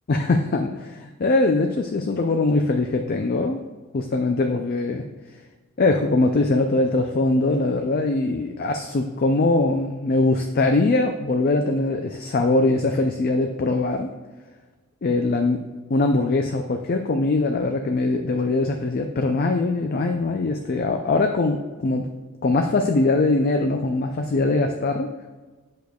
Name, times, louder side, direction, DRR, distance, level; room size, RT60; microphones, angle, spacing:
voice 1, 0.1-3.6 3.9-5.0 5.8-14.1 15.0-15.6 15.9-22.1 22.4-25.1, left 2 dB, 45° left, 5 dB, 0.4 m, -22 dB
8.2 x 6.5 x 2.3 m, 1.3 s
head